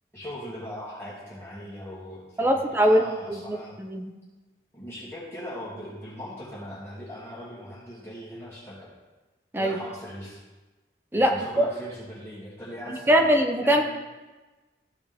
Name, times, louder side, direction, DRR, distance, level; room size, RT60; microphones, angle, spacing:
voice 1, 0.1-3.8 4.7-8.9 9.6-10.4 11.1-13.3 13.6-13.8, equal, 15° left, -9 dB, 2.3 m, -40 dB
voice 2, 2.4-4.1 9.5-9.8 11.1-11.3 11.6-11.7 13.1-13.8, equal, 10° right, 3 dB, 0.6 m, -22 dB
14.0 x 5.1 x 3.5 m, 1.2 s
head